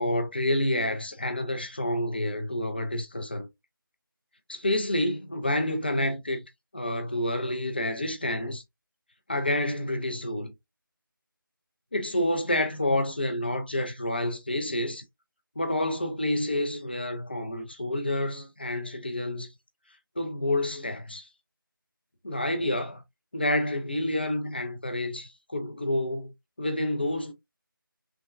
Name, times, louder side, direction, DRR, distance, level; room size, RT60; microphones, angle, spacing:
voice 1, 0.0-3.5 4.5-6.5 6.7-8.6 9.3-10.5 11.9-15.0 15.6-19.5 20.2-21.3 22.2-23.0 23.3-27.3, left 1 dB, 25° left, 0.3 m, -29 dB
3.2 x 2.1 x 2.4 m
figure-of-eight pair, 165°, 12 cm